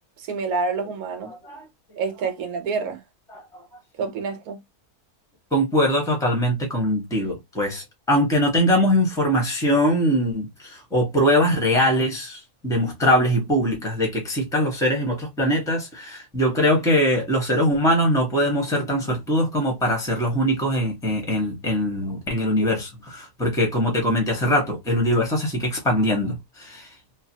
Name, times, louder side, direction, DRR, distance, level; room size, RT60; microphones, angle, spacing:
voice 1, 0.2-1.3 2.0-3.0 4.0-4.6, right 4 dB, 70° right, 1.2 m, -27 dB
voice 2, 5.5-26.9, equal, 5° left, 0.7 m, -22 dB
3.1 x 2.1 x 2.7 m
omnidirectional pair, 1.6 m